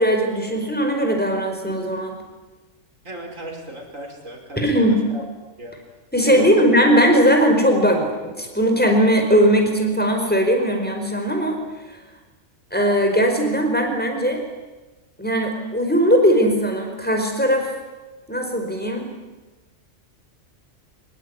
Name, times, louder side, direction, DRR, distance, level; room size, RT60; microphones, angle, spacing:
voice 1, 0.0-2.2 4.6-5.0 6.1-11.6 12.7-14.4 15.2-17.7 18.3-19.1, equal, 5° left, 3 dB, 5.1 m, -19 dB
voice 2, 3.0-5.2 5.6-5.8 6.2-6.5, right 1 dB, 80° right, 2 dB, 5.8 m, -35 dB
25.0 x 21.0 x 9.8 m, 1.2 s
omnidirectional pair, 1.3 m